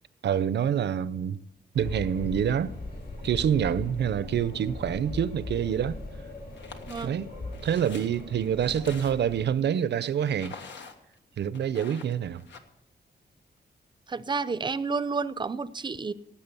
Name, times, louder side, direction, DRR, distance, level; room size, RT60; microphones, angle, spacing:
voice 1, 0.2-1.4 1.7-2.7 3.2-6.0 7.0-7.3 7.6-10.6 11.4-12.4, right 9 dB, 75° right, 0.6 m, -26 dB
sound 1, 1.7-9.5, left 2 dB, 60° left, 6.5 m, -39 dB
sound 2, 6.5-7.1 7.5-9.4 10.3-11.2 11.5-12.6, left 5 dB, 90° left, 1.6 m, -46 dB
voice 2, 14.1-16.1, right 4 dB, 25° right, 0.6 m, -30 dB
18.5 x 7.5 x 6.9 m
wide cardioid pair, 120°, 18 cm